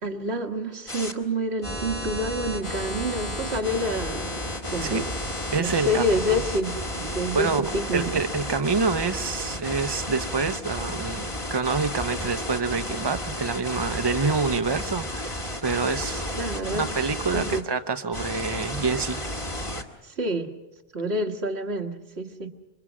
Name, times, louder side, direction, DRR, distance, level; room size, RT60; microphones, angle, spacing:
voice 1, 0.0-5.1 5.6-8.2 16.4-16.9 17.3-17.6 20.0-20.6 20.9-22.5, equal, 85° right, 4 dB, 1.9 m, -28 dB
sound 1, 0.9-1.1 1.6-17.6 18.1-19.8, left 1 dB, 30° left, 1.7 m, -32 dB
voice 2, 5.5-6.4 7.3-16.2 16.7-19.2, right 4 dB, 25° right, 10 dB, 0.8 m, -27 dB
26.5 x 23.5 x 6.2 m, 1.0 s
omnidirectional pair, 1.0 m